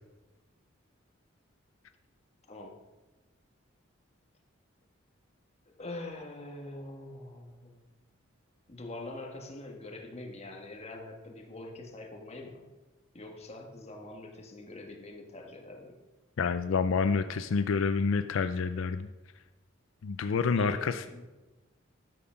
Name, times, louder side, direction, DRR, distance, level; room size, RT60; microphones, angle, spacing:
voice 1, 2.5-2.8 5.6-7.8 8.7-12.7 13.1-15.9 20.5-21.3, left 2 dB, 30° left, 1 dB, 1.5 m, -44 dB
voice 2, 16.4-19.1 20.0-20.9, left 5 dB, 80° left, 10 dB, 0.4 m, -28 dB
12.5 x 5.6 x 5.7 m, 1.2 s
head